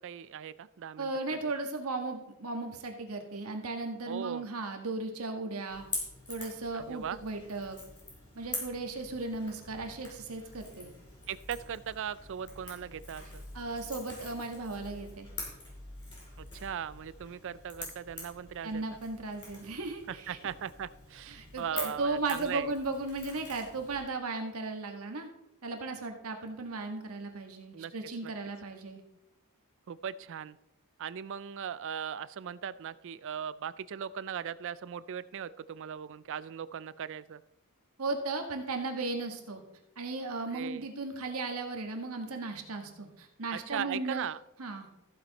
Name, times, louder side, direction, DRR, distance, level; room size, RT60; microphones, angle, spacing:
voice 1, 0.0-1.1 1.4-1.5 4.1-4.5 6.7-7.2 11.3-13.5 16.4-18.8 20.1-22.7 27.7-27.9 28.2-28.3 29.9-30.6 31.0-37.4 40.5-40.9 43.5-44.4, right 8 dB, 60° right, 17 dB, 0.4 m, -39 dB
voice 2, 1.0-5.8 6.3-7.8 8.3-10.9 13.5-15.3 18.6-20.4 21.3-25.3 25.6-29.0 38.0-39.6 40.0-44.3 44.6-44.9, right 3 dB, 75° right, 4 dB, 1.6 m, -36 dB
Crackle / Crack, 5.7-24.0, left 2 dB, 25° left, 5.0 m, -45 dB
14.5 x 7.8 x 4.0 m, 0.90 s
head